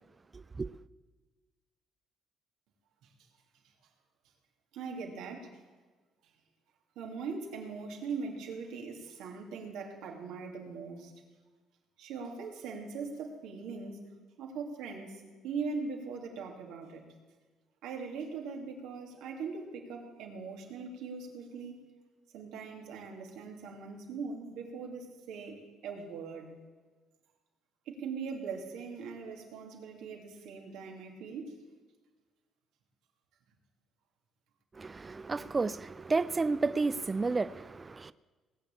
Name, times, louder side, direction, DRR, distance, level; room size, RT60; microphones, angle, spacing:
voice 1, 0.3-0.8 34.7-38.1, right 3 dB, 25° right, 0.4 m, -32 dB
voice 2, 4.7-5.5 7.0-11.1 12.0-17.0 17.8-21.8 22.3-26.5 27.9-31.6, right 5 dB, 90° right, 2.5 m, -41 dB
19.0 x 6.9 x 8.7 m
cardioid pair, 95°, 0 cm